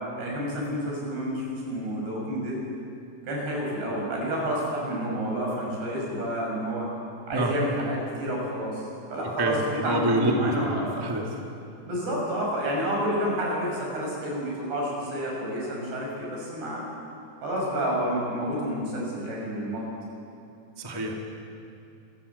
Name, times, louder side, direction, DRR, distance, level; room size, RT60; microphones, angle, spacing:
voice 1, 0.2-2.6 3.2-6.9 7.3-10.9 11.8-16.9 17.4-19.8, equal, 70° right, -2 dB, 8.2 m, -29 dB
voice 2, 9.4-10.3 10.6-11.2 20.8-21.2, right 1 dB, 15° right, 0 dB, 0.8 m, -27 dB
26.5 x 16.0 x 8.1 m, 2.8 s
omnidirectional pair, 4.9 m